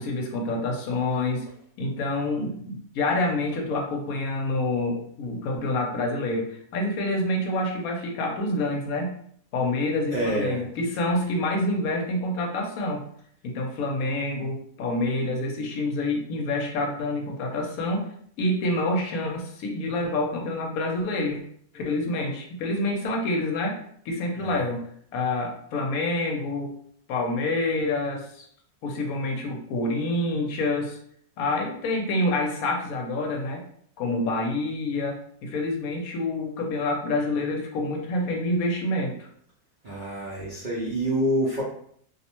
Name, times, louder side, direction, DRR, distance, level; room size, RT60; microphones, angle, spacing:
voice 1, 0.0-1.5 1.8-9.1 9.5-13.0 13.4-18.1 18.4-21.4 21.7-23.8 24.1-24.8 25.1-26.7 27.1-28.5 28.8-31.0 31.4-33.6 34.0-39.3, left 2 dB, 75° left, 1 dB, 1.0 m, -27 dB
voice 2, 10.1-10.6 24.3-24.6 39.8-41.6, right 1 dB, 60° right, -7 dB, 0.5 m, -27 dB
2.6 x 2.1 x 2.9 m, 0.64 s
omnidirectional pair, 1.6 m